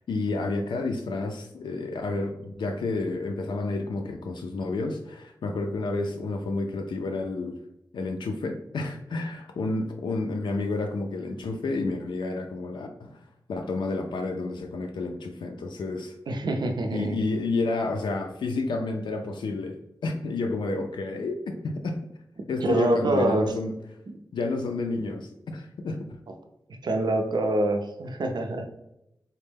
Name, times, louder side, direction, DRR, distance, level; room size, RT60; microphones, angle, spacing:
voice 1, 0.1-7.6 7.9-16.1 16.9-22.0 22.5-23.8 24.3-26.1, left 3 dB, 90° left, 4 dB, 0.4 m, -30 dB
voice 2, 16.3-17.2 22.6-23.5 26.8-28.6, right 2 dB, 65° right, 5 dB, 0.5 m, -25 dB
4.2 x 2.1 x 3.3 m, 0.85 s
wide cardioid pair, 105°, 8 cm